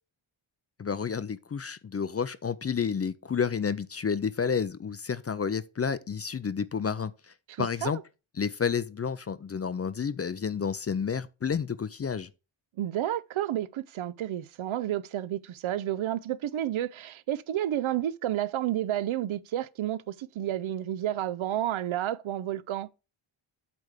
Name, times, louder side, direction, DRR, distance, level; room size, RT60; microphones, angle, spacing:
voice 1, 0.8-8.0 8.4-12.3, left 6 dB, 30° left, 0.4 m, -30 dB
voice 2, 7.5-7.9 12.8-22.9, right 12 dB, 70° right, 0.6 m, -31 dB
8.4 x 3.3 x 6.4 m
wide cardioid pair, 100°, 50 cm